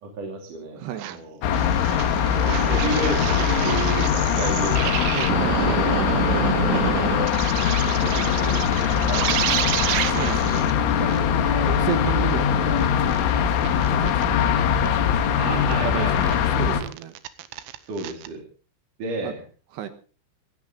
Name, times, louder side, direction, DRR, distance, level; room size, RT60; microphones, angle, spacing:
voice 1, 0.0-1.4 2.5-6.1 6.8-7.2 7.7-8.7 9.1-9.3 9.8-10.0 10.5-11.7 15.4-16.4 17.9-18.4 19.0-19.4, right 3 dB, 45° right, 1 dB, 4.1 m, -32 dB
voice 2, 0.8-1.1 5.0-5.9 7.7-7.8 10.1-10.8 11.2-12.9 13.7-14.1 14.7-15.2 15.5-16.1 16.5-17.1 19.2-19.3 19.7-19.9, right 11 dB, 70° right, 9 dB, 3.0 m, -32 dB
sound 1, 1.0-1.2 1.5-10.7 11.1-11.2 11.5-11.6 11.9-12.0 12.3-12.4 12.8-13.2 13.6-14.3 14.9-15.0 15.7-15.8 16.1-16.4 16.8-18.3, right 14 dB, 90° right, 3.6 m, -29 dB
sound 2, 1.4-16.8, left 8 dB, 80° left, 4.0 m, -22 dB
19.5 x 16.5 x 3.8 m, 0.38 s
omnidirectional pair, 5.6 m